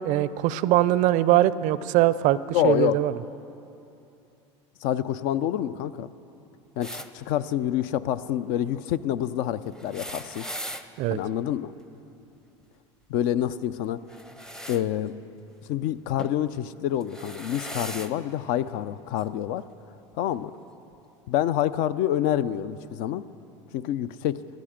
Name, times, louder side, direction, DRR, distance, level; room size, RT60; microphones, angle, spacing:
voice 1, 0.0-2.4 2.6-3.1 11.0-11.2, right 14 dB, 55° right, 17 dB, 0.4 m, -21 dB
voice 2, 2.5-3.0 4.8-6.1 6.8-10.5 11.1-11.7 13.1-14.0 14.7-15.1 15.7-19.6 20.2-20.5 21.3-23.2 23.7-24.4, left 11 dB, 60° left, 15 dB, 0.5 m, -27 dB
sound 1, 6.8-7.1 9.7-10.9 14.1-14.8 16.2-16.4 17.0-18.1 19.2-19.3 20.5-20.6, equal, 5° left, 0.6 m, -38 dB
14.5 x 12.0 x 5.1 m, 2.8 s
hypercardioid pair, 95°, 16 cm